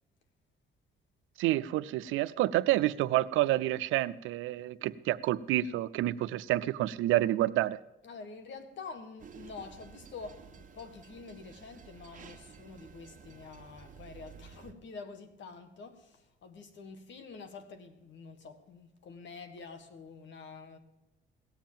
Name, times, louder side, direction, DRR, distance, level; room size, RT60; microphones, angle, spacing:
voice 1, 1.4-7.8, right 15 dB, 90° right, 0.4 m, -29 dB
voice 2, 8.0-20.8, left 4 dB, 65° left, 1.8 m, -47 dB
sound 1, 9.2-14.7, right 6 dB, 40° right, 1.4 m, -52 dB
17.5 x 7.3 x 7.4 m
cardioid pair, 90°, 20 cm